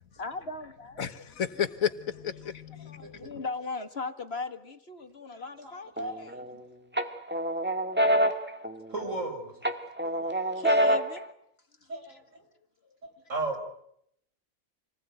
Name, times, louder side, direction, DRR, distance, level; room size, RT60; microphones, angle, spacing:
voice 1, 0.1-1.3 2.8-6.3 10.3-11.3 12.1-12.2, left 3 dB, 50° left, 2.0 m, -38 dB
voice 2, 1.0-3.2, left 8 dB, 80° left, 1.7 m, -32 dB
voice 3, 5.6-6.2 8.9-9.5 10.0-10.5 11.9-12.2 13.3-13.6, right 2 dB, 65° right, 5.6 m, -34 dB
sound 1, 6.0-6.5 7.0-9.2 9.6-11.2, equal, 10° right, 1.8 m, -26 dB
28.0 x 20.0 x 9.2 m
omnidirectional pair, 1.4 m